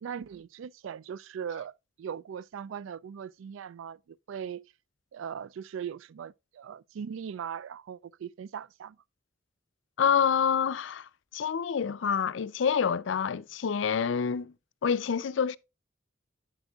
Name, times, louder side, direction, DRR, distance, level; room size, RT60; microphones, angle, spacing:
voice 1, 0.0-4.7 5.1-9.0, right 8 dB, 85° right, 0.3 m, -39 dB
voice 2, 10.0-14.5 14.8-15.6, left 7 dB, 75° left, 0.4 m, -27 dB
8.1 x 8.0 x 2.3 m
head